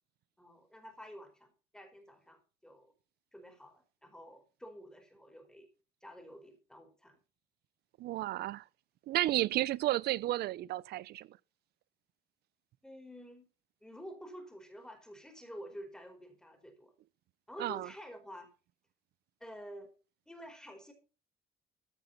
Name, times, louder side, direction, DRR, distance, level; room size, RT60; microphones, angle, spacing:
voice 1, 0.4-2.9 3.3-5.7 6.0-7.2 12.8-13.5 13.8-16.9 17.5-18.5 19.4-19.9 20.3-20.9, equal, 5° left, 4.9 m, -50 dB
voice 2, 8.0-8.6 9.1-11.4 17.6-17.9, right 15 dB, 70° right, 0.7 m, -32 dB
15.0 x 9.0 x 4.2 m
cardioid pair, 110°, 17 cm